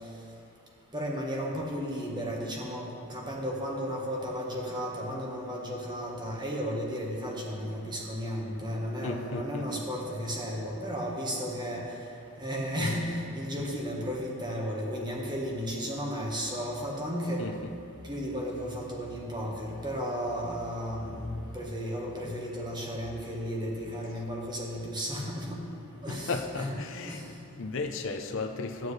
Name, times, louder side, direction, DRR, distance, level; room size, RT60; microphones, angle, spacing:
voice 1, 0.9-11.9 12.4-17.4 18.0-25.6 26.0-26.8 27.1-27.3, equal, 20° right, -2 dB, 1.3 m, -34 dB
voice 2, 9.0-9.8 17.4-17.5 26.1-28.9, left 3 dB, 60° left, 3 dB, 0.6 m, -35 dB
12.0 x 9.3 x 3.2 m, 2.5 s
head